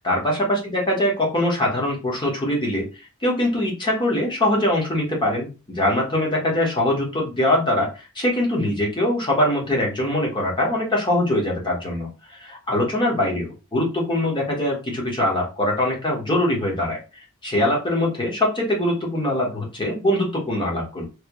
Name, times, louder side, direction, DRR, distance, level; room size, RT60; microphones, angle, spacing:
voice 1, 0.0-2.9 3.2-17.0 17.4-21.0, left 1 dB, 20° left, -2 dB, 1.3 m, -22 dB
3.3 x 2.9 x 3.0 m, 0.30 s
head